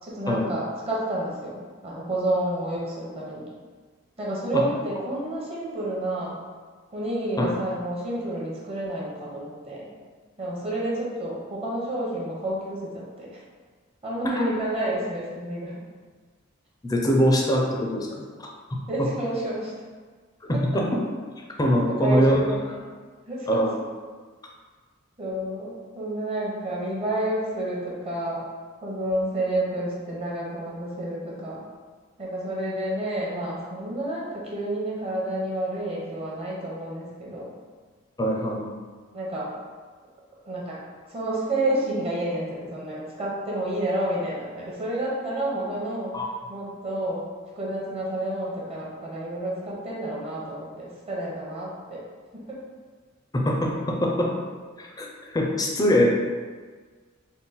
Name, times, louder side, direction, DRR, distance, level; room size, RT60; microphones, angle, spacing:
voice 1, 0.0-3.4 4.2-6.4 6.9-9.9 10.4-13.4 14.0-15.8 18.9-19.7 20.5-20.6 21.8-22.9 23.3-23.6 25.2-28.4 28.8-31.6 32.2-37.5 39.1-39.5 40.4-40.8 41.1-46.2 46.5-47.3 47.6-52.0 52.4-52.6, right 1 dB, 30° right, -5 dB, 0.8 m, -30 dB
voice 2, 16.8-18.1 18.4-18.5 19.0-19.1 20.5-21.0 21.6-22.4 23.5-23.7 38.2-38.6 46.1-46.3 53.3-54.3 54.8-55.1 55.3-56.1, equal, 20° left, 0 dB, 0.4 m, -22 dB
3.7 x 2.1 x 4.0 m, 1.5 s
head